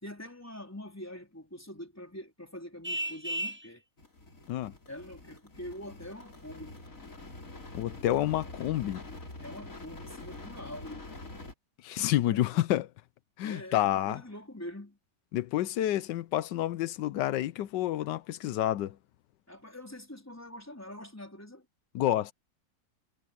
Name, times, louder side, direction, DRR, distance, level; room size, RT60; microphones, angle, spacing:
voice 1, 0.0-3.8 4.9-6.8 9.4-11.1 12.3-12.7 13.4-15.0 19.5-21.7, left 1 dB, 10° left, 4.2 m, -44 dB
Vehicle horn car horn honking, 2.8-3.7, right 1 dB, 15° right, 0.4 m, -33 dB
sound 1, 4.0-11.5, left 2 dB, 50° left, 4.3 m, -46 dB
voice 2, 7.7-9.0 11.8-12.9 13.4-14.2 15.3-19.0 21.9-22.3, left 13 dB, 90° left, 1.3 m, -29 dB
omnidirectional pair, 1.8 m